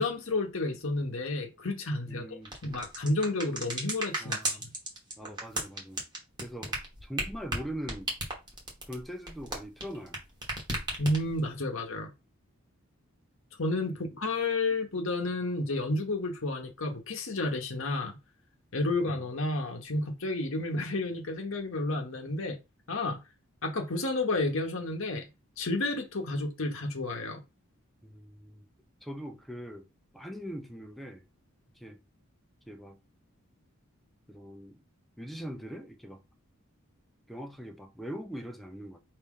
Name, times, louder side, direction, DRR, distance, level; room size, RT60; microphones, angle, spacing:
voice 1, 0.0-2.4 2.6-4.7 11.0-12.1 13.6-18.2 18.7-22.6 22.9-23.2 23.6-25.2 25.6-27.4, left 2 dB, 65° left, 0.9 m, -31 dB
voice 2, 2.1-2.5 4.2-4.6 5.2-6.0 6.4-8.1 8.9-10.2 28.0-28.7 29.0-29.9 30.1-31.3 31.7-32.0 32.7-33.0 34.3-34.8 35.2-36.2 37.3-39.0, equal, ahead, 0.5 m, -41 dB
sound 1, 2.5-10.2 10.4-11.4, right 1 dB, 20° right, 1.1 m, -34 dB
4.9 x 2.7 x 3.6 m
head